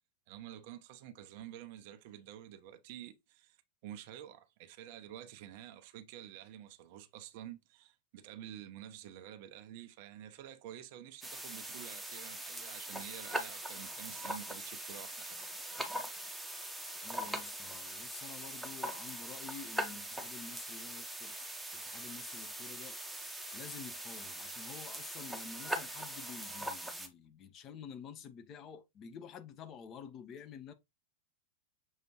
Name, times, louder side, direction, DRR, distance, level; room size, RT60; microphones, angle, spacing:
voice 1, 0.3-3.6 3.8-15.4 19.9-20.1, right 11 dB, 50° right, 0.5 m, -49 dB
sound 1, 11.2-27.1, right 1 dB, 5° right, 0.7 m, -42 dB
voice 2, 17.0-21.3 21.7-23.0 23.5-30.7, left 7 dB, 30° left, 0.6 m, -49 dB
6.3 x 2.5 x 2.9 m
figure-of-eight pair, 90°, 0 cm